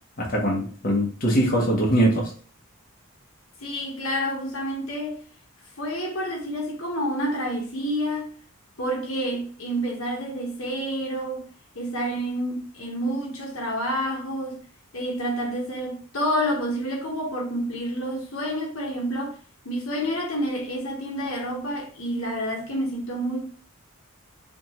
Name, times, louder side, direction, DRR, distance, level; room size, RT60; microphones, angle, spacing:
voice 1, 0.2-2.3, right 1 dB, 40° left, 1.1 m, -22 dB
voice 2, 3.6-5.2 5.8-8.3 8.8-11.5 11.7-14.6 14.9-19.4 19.6-23.4, equal, 70° left, 1.2 m, -28 dB
5.0 x 2.4 x 3.0 m
head